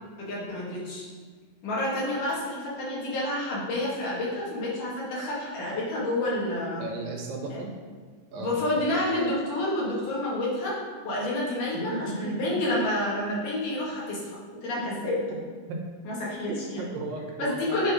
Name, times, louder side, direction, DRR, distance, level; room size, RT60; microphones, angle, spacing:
voice 1, 0.2-1.1 1.6-6.8 8.4-10.8 11.0-14.2 14.6-15.1 16.1-16.8 17.4-17.9, left 1 dB, 70° left, -6 dB, 3.7 m, -29 dB
voice 2, 6.8-7.8 8.3-8.6 11.9-12.6 14.9-15.1 15.7-15.8 16.3-17.9, right 2 dB, 85° right, 2 dB, 2.8 m, -35 dB
9.4 x 4.5 x 5.1 m, 1.5 s
omnidirectional pair, 3.9 m